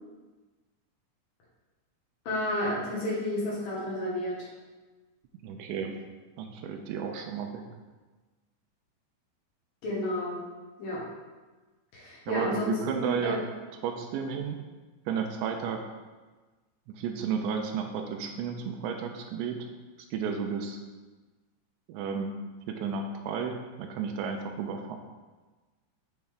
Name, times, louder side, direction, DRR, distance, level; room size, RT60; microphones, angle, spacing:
voice 1, 2.3-4.5 9.8-10.4 10.8-11.0 11.9-13.3, left 1 dB, 60° left, -5 dB, 2.8 m, -31 dB
voice 2, 5.4-6.0 6.4-7.6 12.3-13.4 13.8-14.6 15.1-15.8 17.0-19.7 20.1-20.8 21.9-22.4 22.7-25.0, right 6 dB, 85° right, 4 dB, 3.0 m, -32 dB
7.6 x 7.1 x 3.5 m, 1.3 s
omnidirectional pair, 5.2 m